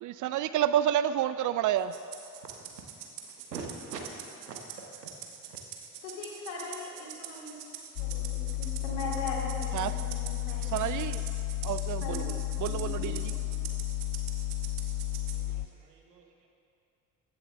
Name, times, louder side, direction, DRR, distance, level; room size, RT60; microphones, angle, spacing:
voice 1, 0.0-1.9 9.7-9.9 10.7-11.2 11.6-12.2 12.6-13.2, right 11 dB, 45° right, 13 dB, 0.4 m, -29 dB
Rattle (instrument), 1.9-15.4, right 9 dB, 65° right, 1.3 m, -44 dB
voice 2, 3.5-4.0 4.5-4.6 10.5-11.1 15.3-16.5, right 5 dB, 90° right, 2 dB, 1.2 m, -44 dB
voice 3, 6.0-7.6 8.0-11.0 12.0-12.3 12.7-13.1, left 3 dB, 70° left, -3 dB, 2.8 m, -40 dB
sound 1, 8.0-15.7, left 15 dB, 50° left, 0.5 m, -33 dB
15.0 x 10.5 x 3.4 m, 2.5 s
hypercardioid pair, 55°, 47 cm